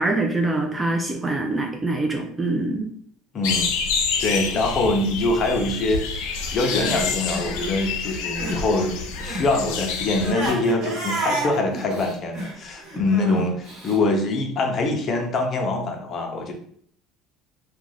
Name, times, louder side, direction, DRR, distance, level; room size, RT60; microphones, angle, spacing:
voice 1, 0.0-2.9, right 2 dB, 15° right, 2 dB, 0.4 m, -24 dB
voice 2, 3.3-3.8 4.2-6.2 6.5-16.5, left 2 dB, 35° left, 2 dB, 0.6 m, -24 dB
sound 1, 3.4-10.3, left 5 dB, 80° left, 0.5 m, -28 dB
Crying sobbing, 6.5-8.7 8.9-14.0, right 1 dB, 50° right, 1.2 m, -31 dB
2.4 x 2.2 x 3.3 m, 0.63 s
cardioid pair, 130°, 0 cm